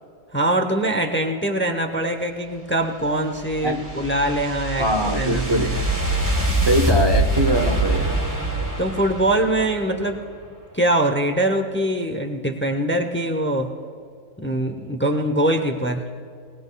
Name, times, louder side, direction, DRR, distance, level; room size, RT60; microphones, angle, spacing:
voice 1, 0.3-5.8 8.8-10.3 10.7-13.8 14.4-16.1, right 1 dB, 15° left, 5 dB, 0.5 m, -23 dB
sound 1, 2.8-10.1, right 1 dB, 15° right, 1.2 m, -24 dB
voice 2, 4.8-5.8 6.7-8.3, right 1 dB, 45° right, 3 dB, 0.3 m, -22 dB
20.0 x 19.0 x 2.3 m, 2.2 s
omnidirectional pair, 1.4 m